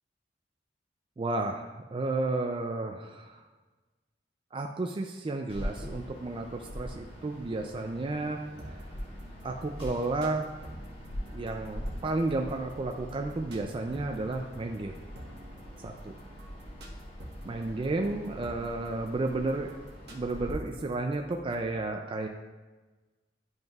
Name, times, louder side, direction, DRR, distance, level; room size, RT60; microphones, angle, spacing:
voice 1, 1.2-3.4 4.5-8.4 8.7-8.8 9.4-10.5 11.3-14.9 15.8-16.1 17.4-19.7 20.1-22.3, right 2 dB, 30° right, 3 dB, 0.4 m, -32 dB
sound 1, 5.5-20.5, equal, 30° left, 1.5 m, -43 dB
sound 2, 8.6-21.7, equal, 65° right, 1.1 m, -48 dB
11.0 x 5.2 x 2.4 m, 1.3 s
head